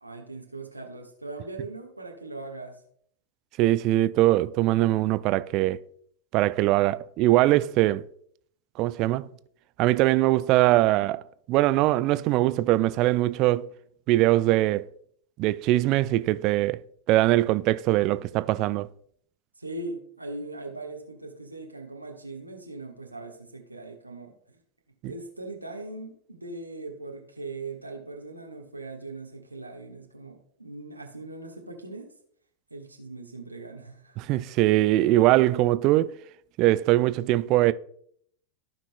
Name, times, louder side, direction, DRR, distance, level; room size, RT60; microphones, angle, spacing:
voice 1, 0.0-2.8 19.6-24.3 25.1-32.1 32.7-34.2, right 2 dB, 85° right, 1.3 m, -40 dB
voice 2, 3.6-5.8 6.3-8.0 8.8-9.3 9.8-11.2 11.5-13.7 14.1-14.9 15.4-16.8 17.1-18.9 25.0-25.1 34.2-36.1 36.6-37.7, right 16 dB, 40° right, 0.4 m, -22 dB
15.0 x 5.9 x 2.2 m
figure-of-eight pair, 90°, 0 cm